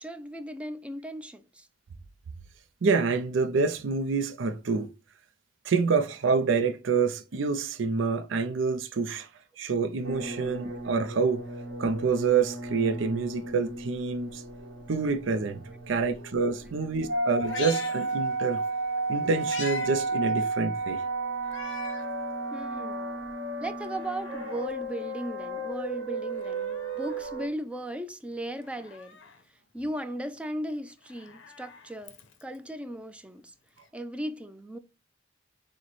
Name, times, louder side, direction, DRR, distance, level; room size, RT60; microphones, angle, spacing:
voice 1, 0.0-1.7 10.2-10.4 22.5-23.1 23.6-29.2 29.5-33.5 33.9-34.8, right 1 dB, 5° right, 0.4 m, -37 dB
voice 2, 2.8-4.9 5.6-9.3 9.6-11.4 11.8-14.4 14.9-15.6 15.9-18.6 19.1-21.0, right 4 dB, 80° right, 0.5 m, -27 dB
sound 1, 10.0-27.5, right 2 dB, 60° right, 1.4 m, -33 dB
Meow, 17.4-18.7 19.0-19.9 20.3-20.4 21.4-22.1 22.6-22.7 23.7-24.7 26.2-27.2 28.6-29.4 30.9-32.6 33.8-33.9, left 6 dB, 80° left, 0.6 m, -43 dB
6.2 x 2.1 x 3.0 m
head